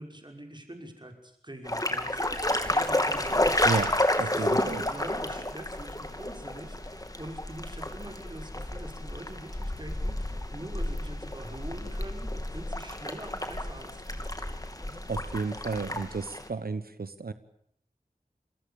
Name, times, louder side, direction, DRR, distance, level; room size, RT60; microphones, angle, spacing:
voice 1, 0.0-2.2 2.6-3.9 4.3-14.2 14.8-15.0, right 1 dB, 30° right, 3 dB, 5.9 m, -44 dB
sound 1, 1.7-16.5, left 1 dB, 25° left, 2.9 m, -31 dB
voice 2, 4.2-4.8 15.1-17.3, right 4 dB, 85° right, 12 dB, 1.2 m, -32 dB
27.5 x 21.5 x 7.0 m, 0.70 s
wide cardioid pair, 55°, 15 cm